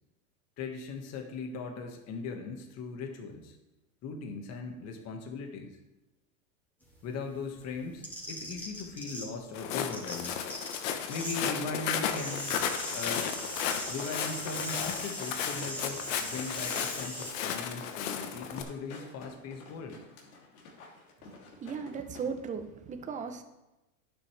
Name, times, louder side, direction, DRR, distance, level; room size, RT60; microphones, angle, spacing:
voice 1, 0.6-3.6 4.0-5.8 7.0-10.4 11.1-12.6 12.9-13.3 13.7-20.0, left 4 dB, 35° left, 3 dB, 1.7 m, -39 dB
sound 1, 6.8-9.5 9.8-11.4 11.7-17.3, equal, 5° left, 2.8 m, -40 dB
Walk footsteps, 9.5-18.6, left 8 dB, 60° left, 1.2 m, -34 dB
sound 2, 15.5-22.3 22.6-22.7, left 3 dB, 80° left, 3.1 m, -51 dB
voice 2, 21.6-23.4, right 6 dB, 15° right, 7 dB, 0.9 m, -37 dB
11.0 x 9.0 x 3.4 m, 1.0 s
supercardioid pair, 130°, 42 cm